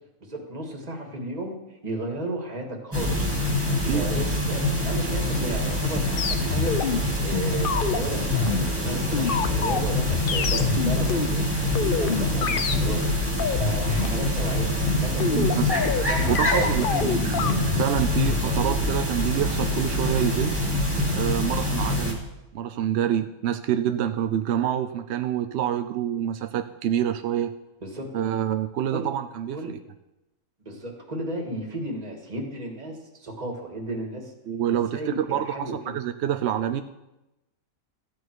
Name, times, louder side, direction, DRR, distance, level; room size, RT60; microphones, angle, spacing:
voice 1, 0.2-1.6 1.8-3.3 3.9-6.8 7.2-11.4 11.8-13.0 13.6-14.8 15.0-17.4 27.8-28.1 28.9-29.1 29.5-29.7 30.6-34.3 34.7-36.0, right 1 dB, 25° right, 1 dB, 2.0 m, -34 dB
sound 1, 2.9-22.1, left 1 dB, 10° right, 2.4 m, -25 dB
voice 2, 3.7-4.1 15.3-15.7 16.3-20.6 21.1-22.2 22.5-27.5 28.1-29.8 34.5-36.8, right 10 dB, 65° right, 9 dB, 0.7 m, -27 dB
sound 2, 6.2-18.4, left 6 dB, 50° left, 0.7 m, -27 dB
14.5 x 8.8 x 4.7 m, 0.96 s
omnidirectional pair, 1.5 m